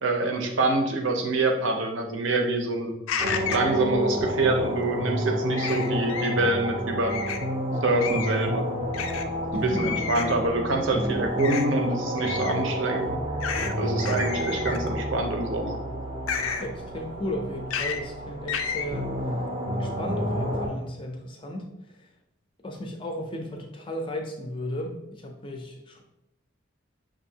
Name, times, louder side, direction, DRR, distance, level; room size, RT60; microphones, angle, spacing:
voice 1, 0.0-3.0 3.5-7.2 7.8-8.7 9.5-13.1 13.8-15.8, right 2 dB, 70° right, 4 dB, 0.6 m, -26 dB
sound 1, 3.1-3.7 5.6-6.3 7.1-7.4 8.0-8.4 8.9-9.2 9.8-10.4 11.4-11.6 12.2-12.6 13.4-13.7 14.0-14.9 16.3-16.7 17.7-18.0 18.5-18.8, left 7 dB, 85° left, 0.4 m, -31 dB
sound 2, 3.2-20.7, equal, 25° right, 0.5 m, -30 dB
voice 2, 9.5-9.8 16.6-19.1 19.7-21.7 22.0-22.1 22.6-26.0, left 1 dB, 25° left, 3 dB, 0.4 m, -34 dB
5.9 x 2.6 x 2.7 m, 0.90 s
head